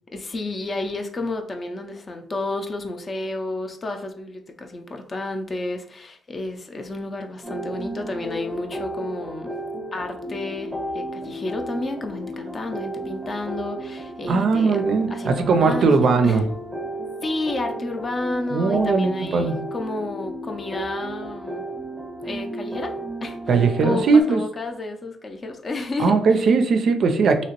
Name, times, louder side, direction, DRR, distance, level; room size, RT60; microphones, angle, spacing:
voice 1, 0.1-9.6 9.9-16.4 17.2-21.7 22.2-26.5, left 2 dB, 35° left, 5 dB, 0.5 m, -31 dB
sound 1, 7.4-24.2, right 1 dB, ahead, 0.8 m, -33 dB
voice 2, 14.3-16.4 18.5-19.6 23.5-24.4 26.0-27.4, right 4 dB, 60° right, 6 dB, 0.4 m, -19 dB
2.9 x 2.8 x 2.9 m, 0.65 s
cardioid pair, 90°, 0 cm